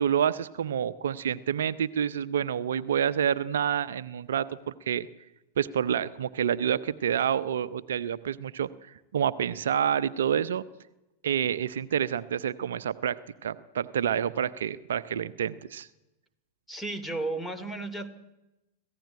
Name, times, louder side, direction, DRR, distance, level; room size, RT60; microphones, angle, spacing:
voice 1, 0.0-5.1 5.6-10.6 11.2-13.2 13.4-15.9, right 8 dB, 65° right, 15 dB, 0.7 m, -28 dB
voice 2, 16.7-18.1, right 2 dB, 10° left, 10 dB, 2.7 m, -33 dB
25.0 x 16.0 x 9.1 m, 0.99 s
figure-of-eight pair, 90°, 0 cm